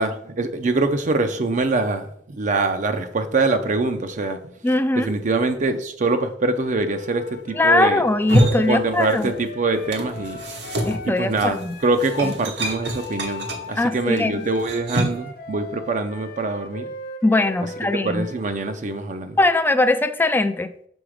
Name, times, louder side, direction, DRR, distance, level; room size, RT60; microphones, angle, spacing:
voice 1, 0.0-4.4 5.0-8.0 8.4-10.4 11.0-16.8 18.0-19.4, right 3 dB, 45° right, 7 dB, 0.5 m, -24 dB
voice 2, 4.6-5.1 7.6-9.3 10.9-11.8 12.2-12.3 13.8-14.4 17.2-18.3 19.4-20.7, left 2 dB, 10° left, 10 dB, 0.3 m, -20 dB
Wind instrument woodwind instrument, 6.6-12.4 12.8-18.4, left 3 dB, 60° left, 0.7 m, -38 dB
sound 1, 8.1-9.5 9.7-15.3, equal, 80° right, 1.1 m, -26 dB
6.2 x 4.0 x 4.9 m, 0.65 s
head